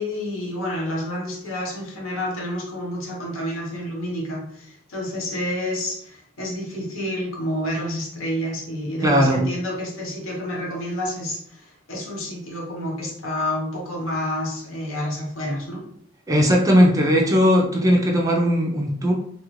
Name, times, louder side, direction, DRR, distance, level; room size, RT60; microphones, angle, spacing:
voice 1, 0.0-15.9, left 1 dB, 70° left, -1 dB, 0.9 m, -29 dB
voice 2, 9.0-9.4 16.3-19.1, equal, 15° right, 0 dB, 0.4 m, -18 dB
2.9 x 2.4 x 3.0 m, 0.63 s
head